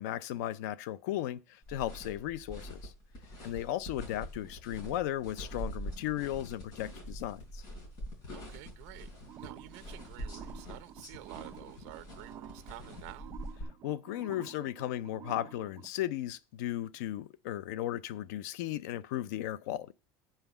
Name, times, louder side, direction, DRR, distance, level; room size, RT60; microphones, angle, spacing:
voice 1, 0.0-2.9 3.4-7.6 13.8-19.9, left 13 dB, 85° left, 0.5 m, -36 dB
sound 1, 1.6-13.6, equal, 45° left, 4.4 m, -45 dB
voice 2, 8.3-9.1 9.4-13.3, right 16 dB, 65° right, 0.8 m, -50 dB
sound 2, 9.3-15.9, right 10 dB, 30° right, 0.6 m, -50 dB
8.8 x 5.7 x 7.1 m
cardioid pair, 170°, 9 cm